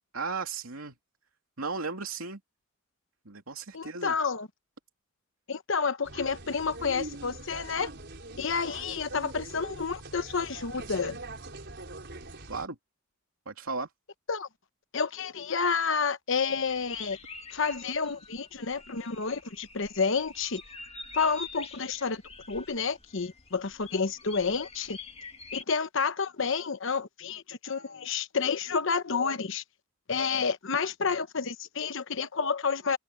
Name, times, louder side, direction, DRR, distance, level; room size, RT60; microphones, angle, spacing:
voice 1, 0.1-0.9 1.6-2.4 3.2-4.1 12.5-12.8 13.5-13.9, right 4 dB, 85° right, 2.8 m, -35 dB
voice 2, 3.7-4.5 5.5-7.9 8.4-11.2 14.3-14.5 14.9-17.2 17.5-20.6 21.1-22.2 22.5-25.0 25.5-29.6 30.1-33.0, left 5 dB, 65° left, 1.0 m, -30 dB
sound 1, 6.0-12.7, right 2 dB, 55° right, 5.1 m, -43 dB
sound 2, 16.7-25.6, left 4 dB, 30° left, 1.9 m, -46 dB
head